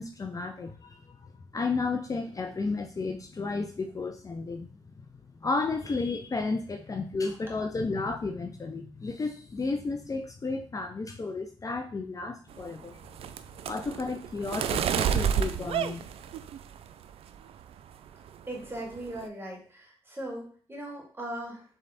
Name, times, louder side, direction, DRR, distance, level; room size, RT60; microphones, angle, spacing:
voice 1, 0.0-4.7 5.4-13.0 13.7-16.1, left 3 dB, 35° left, 5 dB, 0.6 m, -33 dB
sound 1, 12.5-16.9 17.3-17.8 18.1-18.4 18.6-19.3, right 8 dB, 70° right, 0.4 m, -30 dB
voice 2, 18.5-21.6, right 1 dB, 20° right, -1 dB, 2.1 m, -39 dB
3.7 x 3.4 x 4.1 m, 0.43 s
supercardioid pair, 55°, 10 cm